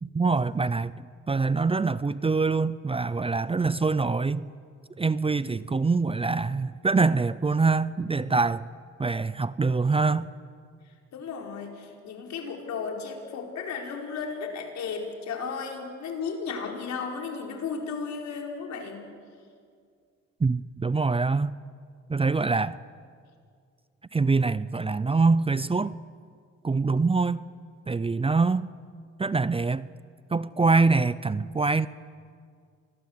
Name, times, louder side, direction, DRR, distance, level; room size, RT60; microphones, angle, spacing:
voice 1, 0.0-4.5 5.0-8.7 9.0-10.3 20.4-21.6 22.1-22.8 24.1-26.0 26.6-27.5 27.9-28.7 29.2-29.9 30.3-31.9, right 4 dB, 20° right, 0.6 m, -24 dB
voice 2, 11.1-19.0, left 5 dB, 70° left, 4.9 m, -34 dB
27.5 x 21.5 x 8.1 m
cardioid pair, 80°, 29 cm